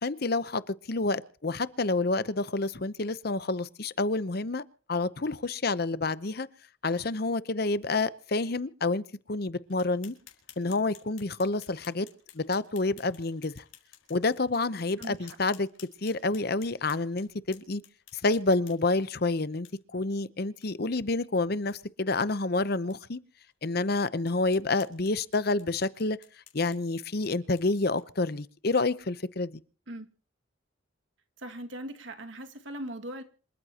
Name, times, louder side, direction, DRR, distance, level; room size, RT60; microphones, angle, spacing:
voice 1, 0.0-4.6 4.9-6.5 6.8-9.0 9.3-10.1 10.6-12.1 12.3-13.6 14.1-15.7 16.0-17.8 18.1-19.7 19.9-23.2 23.6-26.2 26.5-29.6, left 3 dB, 50° left, 0.8 m, -28 dB
sound 1, 9.7-19.0 19.6-19.7 20.1-20.2 20.6-20.7 21.1-21.2 21.5-21.8 22.3-22.4 22.9-23.0 23.5-23.6 24.2-28.3, left 11 dB, 85° left, 4.7 m, -55 dB
voice 2, 15.0-15.4 29.9-30.1 31.4-33.2, right 1 dB, 70° right, 2.1 m, -40 dB
27.0 x 14.0 x 2.9 m
head